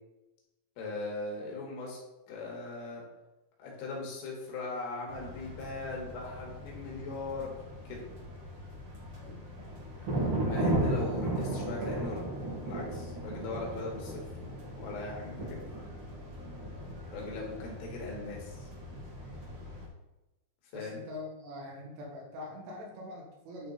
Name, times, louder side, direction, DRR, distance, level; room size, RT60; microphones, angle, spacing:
voice 1, 0.8-2.0 2.3-3.0 3.6-7.6 7.9-8.0 10.5-12.2 12.6-14.2 14.8-15.7 17.1-18.7 20.7-21.0, left 3 dB, 75° left, -2 dB, 4.3 m, -39 dB
sound 1, 5.1-19.9, right 1 dB, 55° right, 1.5 m, -36 dB
voice 2, 20.7-23.7, left 2 dB, 75° right, -2 dB, 4.3 m, -43 dB
11.0 x 4.0 x 4.1 m, 1.0 s
omnidirectional pair, 5.8 m